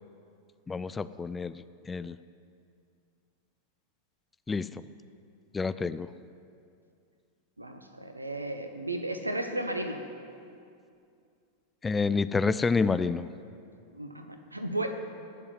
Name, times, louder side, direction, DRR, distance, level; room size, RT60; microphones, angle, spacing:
voice 1, 0.7-1.5 1.9-2.2 4.5-4.7 5.5-6.1 11.8-13.3, left 4 dB, 15° left, 14 dB, 0.4 m, -28 dB
voice 2, 7.6-10.0 13.9-14.9, right 1 dB, 85° right, 7 dB, 1.2 m, -34 dB
18.5 x 6.9 x 9.5 m, 2.4 s
figure-of-eight pair, 90°, 0 cm